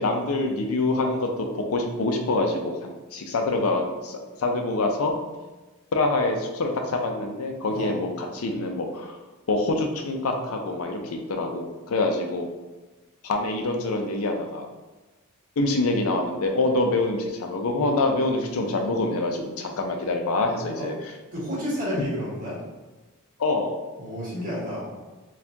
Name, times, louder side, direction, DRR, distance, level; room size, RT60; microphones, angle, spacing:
voice 1, 0.0-5.2 5.9-9.2 9.5-12.5 13.2-14.6 15.6-20.9 23.4-23.8, left 2 dB, 70° left, 4 dB, 0.5 m, -25 dB
voice 2, 7.7-8.0 20.8-20.9 21.3-22.6 24.0-24.9, equal, 40° right, -8 dB, 1.5 m, -31 dB
4.3 x 2.4 x 2.7 m, 1.2 s
head